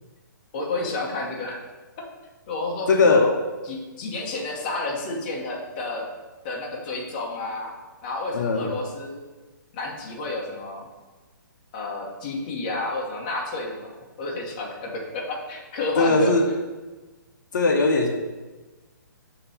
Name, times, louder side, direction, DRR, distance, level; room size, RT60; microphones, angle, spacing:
voice 1, 0.5-1.6 2.5-3.3 3.7-6.1 6.4-7.7 8.0-9.2 9.7-10.9 11.7-16.3, left 2 dB, 25° left, -2 dB, 1.0 m, -31 dB
voice 2, 2.9-3.3 8.3-8.7 16.0-16.5 17.5-18.1, left 3 dB, 60° left, 2 dB, 0.9 m, -19 dB
7.1 x 3.0 x 5.5 m, 1.2 s
hypercardioid pair, 165°, 11 cm